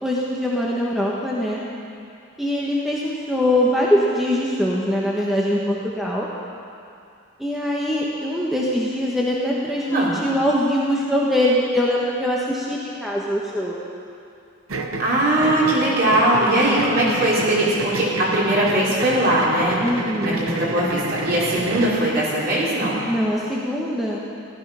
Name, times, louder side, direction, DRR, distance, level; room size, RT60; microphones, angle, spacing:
voice 1, 0.0-1.6 2.4-6.3 7.4-13.8 16.6-17.0 19.8-20.4 23.1-24.2, equal, ahead, -5 dB, 1.3 m, -22 dB
sound 1, 14.7-22.0, right 2 dB, 75° right, 1.0 m, -30 dB
voice 2, 15.0-19.8 20.2-23.0, right 1 dB, 45° right, -7 dB, 4.0 m, -20 dB
15.5 x 13.0 x 5.7 m, 2.5 s
head